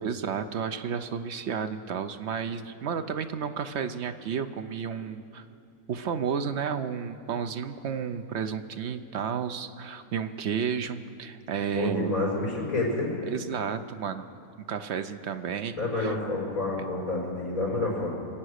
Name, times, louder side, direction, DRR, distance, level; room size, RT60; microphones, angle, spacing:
voice 1, 0.0-5.4 5.9-12.1 13.2-14.2 14.7-16.1, right 7 dB, 60° right, 9 dB, 0.8 m, -32 dB
voice 2, 11.7-13.1 15.7-18.2, left 2 dB, 65° left, -5 dB, 4.8 m, -29 dB
24.5 x 8.8 x 6.4 m, 2.5 s
omnidirectional pair, 1.6 m